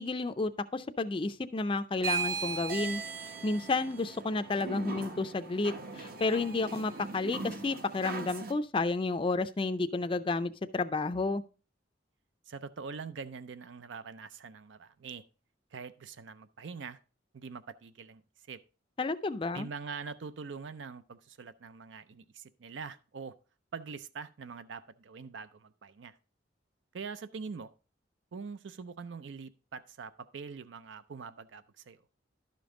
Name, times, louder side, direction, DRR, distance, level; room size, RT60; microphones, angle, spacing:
voice 1, 0.0-3.0 3.4-11.4 19.0-19.7, left 3 dB, 30° left, 0.4 m, -31 dB
sound 1, 2.0-8.5, right 5 dB, 55° right, 0.9 m, -38 dB
voice 2, 12.5-15.2 15.7-17.0 17.3-18.2 18.5-18.6 19.5-23.4 23.7-26.2 26.9-27.7 28.3-32.0, right 5 dB, 80° right, 0.5 m, -44 dB
11.5 x 5.3 x 3.7 m
head